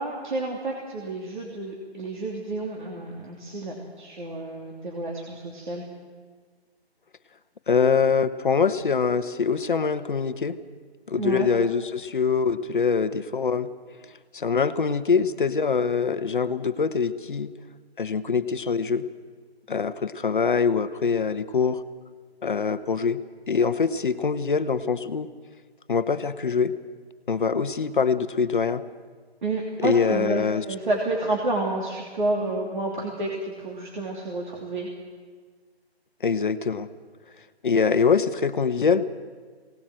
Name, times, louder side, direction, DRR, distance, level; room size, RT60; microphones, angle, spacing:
voice 1, 0.0-5.9 11.2-11.5 29.4-34.9, right 2 dB, 45° right, -1 dB, 2.9 m, -30 dB
voice 2, 7.7-10.6 11.1-13.7 14.3-17.5 18.0-19.1 19.7-21.8 22.4-23.2 23.5-25.3 25.9-26.7 27.3-28.8 29.8-30.6 36.2-36.9 37.6-39.0, left 5 dB, 50° left, 12 dB, 1.0 m, -24 dB
21.0 x 18.5 x 7.6 m, 1.5 s
figure-of-eight pair, 160°, 32 cm